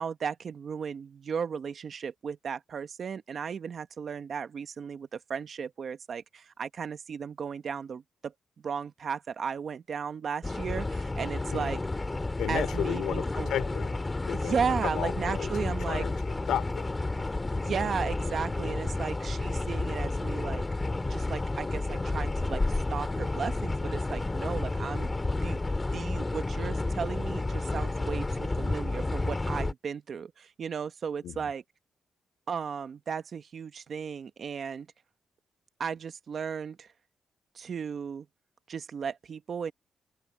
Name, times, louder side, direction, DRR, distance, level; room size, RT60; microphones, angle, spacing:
voice 1, 0.0-11.8 12.5-13.5 14.3-16.0 17.5-20.6 21.1-25.6 25.9-31.6 32.5-34.9 35.8-36.9 37.5-38.3 38.7-39.7, right 6 dB, 50° right, 1.1 m, -35 dB
sound 1, 10.4-29.7, left 2 dB, 20° left, 2.2 m, -31 dB
voice 2, 12.4-16.9 31.2-31.5, left 10 dB, 90° left, 2.8 m, -34 dB
open air
cardioid pair, 115°, 0 cm